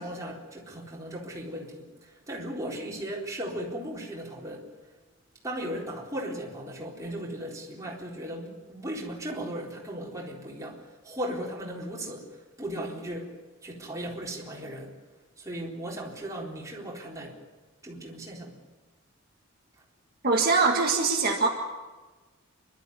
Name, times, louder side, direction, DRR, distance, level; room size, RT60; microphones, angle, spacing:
voice 1, 0.0-4.7 5.4-13.3 13.6-14.9 15.4-17.4 17.8-18.6, right 1 dB, 15° right, -3 dB, 4.0 m, -37 dB
voice 2, 20.2-21.5, right 4 dB, 45° right, 0 dB, 1.8 m, -23 dB
28.5 x 12.5 x 9.6 m, 1.3 s
head